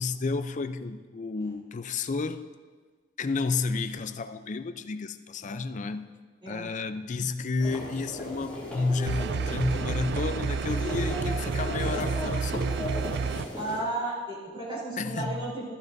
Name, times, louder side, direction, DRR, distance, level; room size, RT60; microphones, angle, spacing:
voice 1, 0.0-2.4 3.2-6.1 6.5-12.8 15.0-15.5, left 4 dB, 40° left, 0.4 m, -31 dB
sound 1, 7.6-13.8, equal, 5° left, 2.6 m, -36 dB
sound 2, 9.1-13.5, right 5 dB, 60° right, 0.4 m, -30 dB
voice 2, 13.5-15.7, right 2 dB, 25° right, 3.7 m, -33 dB
13.5 x 12.0 x 2.6 m
head